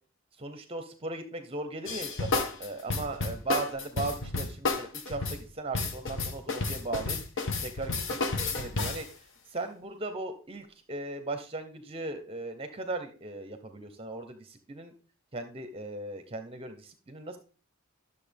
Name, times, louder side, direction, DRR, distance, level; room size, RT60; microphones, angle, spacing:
voice 1, 0.4-7.2 7.6-9.1 9.5-14.9 15.3-17.4, right 2 dB, 25° right, 7 dB, 0.7 m, -37 dB
sound 1, 1.9-9.1, left 3 dB, 60° left, 1.1 m, -31 dB
12.0 x 6.8 x 3.4 m, 0.40 s
head